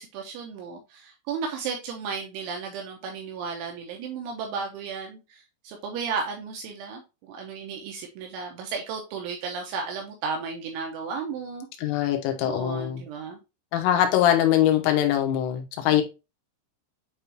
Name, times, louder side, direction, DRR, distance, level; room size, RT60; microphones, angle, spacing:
voice 1, 0.0-11.7 12.4-13.4 15.9-16.0, right 5 dB, 80° right, 3.1 m, -34 dB
voice 2, 11.8-13.0 13.7-16.0, left 11 dB, 80° left, 3.5 m, -22 dB
9.1 x 3.6 x 2.8 m
omnidirectional pair, 5.9 m